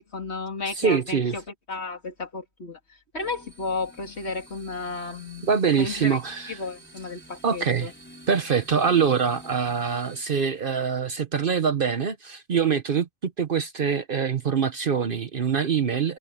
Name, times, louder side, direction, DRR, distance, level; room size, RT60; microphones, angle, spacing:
voice 1, 0.0-1.4 1.7-6.2 6.5-7.9, left 3 dB, 85° left, 3.0 m, -33 dB
voice 2, 0.8-1.4 5.4-6.6 7.4-7.9 8.3-16.2, right 6 dB, 55° right, 1.1 m, -24 dB
sound 1, 3.2-10.2, right 1 dB, 10° left, 4.1 m, -49 dB
omnidirectional pair, 1.1 m